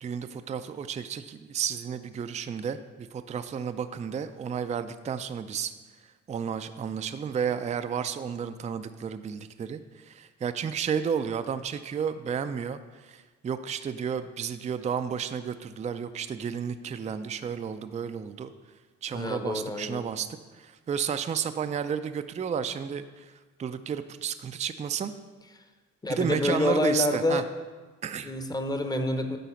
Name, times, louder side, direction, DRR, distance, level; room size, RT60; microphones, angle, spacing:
voice 1, 0.0-5.7 6.3-18.5 19.0-20.3 20.5-25.1 26.1-27.4 28.0-28.3, right 7 dB, 25° right, 10 dB, 0.4 m, -32 dB
voice 2, 19.1-20.1 26.0-27.4 28.2-29.4, left 1 dB, 15° left, 7 dB, 0.7 m, -27 dB
9.2 x 3.9 x 5.7 m, 1.3 s
cardioid pair, 90°, 30 cm